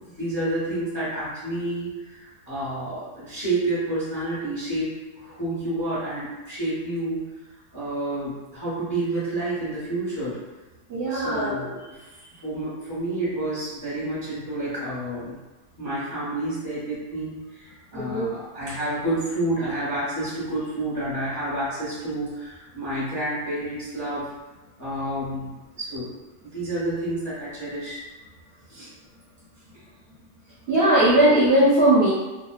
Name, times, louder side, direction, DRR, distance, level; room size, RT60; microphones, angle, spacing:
voice 1, 0.0-4.9 5.2-7.3 7.7-10.4 11.1-15.4 15.8-24.3 24.8-26.1 26.5-28.0 28.7-28.9, right 1 dB, 15° left, -10 dB, 0.6 m, -29 dB
voice 2, 10.9-11.6 17.9-18.3 30.7-32.1, right 1 dB, 55° right, -11 dB, 0.7 m, -19 dB
2.6 x 2.1 x 2.3 m, 1.2 s
omnidirectional pair, 1.7 m